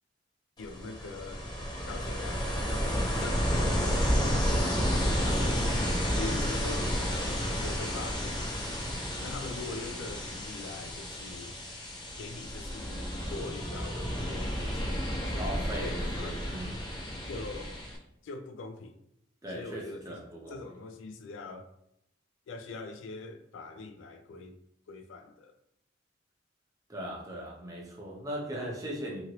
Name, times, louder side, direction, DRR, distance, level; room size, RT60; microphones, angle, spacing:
voice 1, 0.6-1.5 1.9-5.6 6.2-8.6 9.2-11.5 12.2-15.5 15.8-16.3 17.3-17.8 18.2-19.0 19.5-20.2 20.5-21.7 22.5-24.6 24.9-25.5, left 3 dB, 70° left, 0.3 m, -43 dB
Ocean, 0.6-18.0, equal, 20° left, 0.5 m, -31 dB
voice 2, 15.4-16.9 19.4-20.6 26.9-29.2, right 1 dB, 15° right, 0.7 m, -38 dB
2.9 x 2.5 x 2.9 m
head